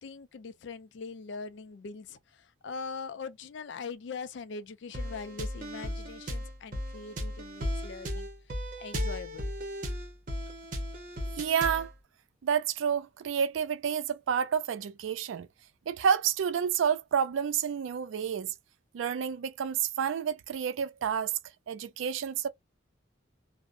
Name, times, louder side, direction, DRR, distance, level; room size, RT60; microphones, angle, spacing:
voice 1, 0.0-8.3 8.8-9.5, left 4 dB, 65° left, 0.4 m, -42 dB
sound 1, 4.9-11.9, equal, 45° right, 0.7 m, -36 dB
voice 2, 11.4-11.9 12.4-15.5 15.9-18.5 18.9-21.4 21.7-22.5, right 7 dB, 85° right, 0.3 m, -29 dB
2.6 x 2.0 x 2.5 m
head